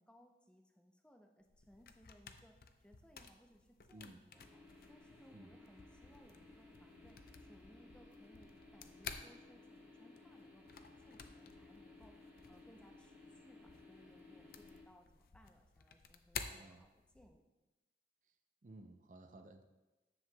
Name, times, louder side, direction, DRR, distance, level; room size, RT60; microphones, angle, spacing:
voice 1, 0.0-4.6 4.9-12.2 12.5-17.4, equal, 5° left, 3 dB, 0.6 m, -65 dB
sound 1, 1.4-17.4, left 6 dB, 55° left, 0.5 m, -54 dB
sound 2, 4.3-14.8, left 2 dB, 10° right, 1.2 m, -59 dB
voice 2, 16.4-16.9 18.6-19.6, right 2 dB, 45° right, 6 dB, 0.5 m, -56 dB
10.0 x 7.6 x 2.2 m, 1.1 s
head